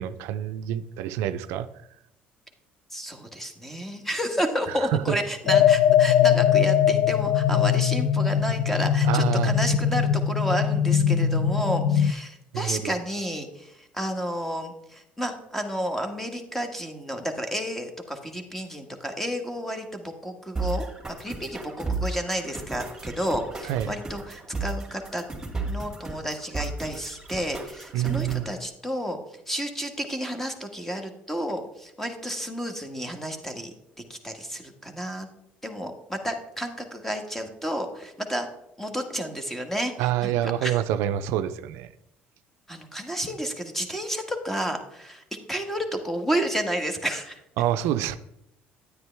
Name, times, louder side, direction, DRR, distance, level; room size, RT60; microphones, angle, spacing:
voice 1, 0.0-1.7 4.7-5.2 9.0-9.5 12.5-12.9 23.6-23.9 27.9-28.4 40.0-41.9 47.6-48.2, right 11 dB, 80° right, 11 dB, 0.5 m, -27 dB
voice 2, 2.9-25.2 25.6-33.7 34.1-35.3 35.6-38.5 38.8-40.8 42.7-47.4, equal, 5° left, 6 dB, 1.5 m, -31 dB
sound 1, 5.5-12.1, left 9 dB, 85° left, 0.4 m, -21 dB
sound 2, 20.5-28.5, right 3 dB, 10° right, 2.4 m, -34 dB
9.4 x 9.4 x 3.4 m, 0.82 s
cardioid pair, 100°, 4 cm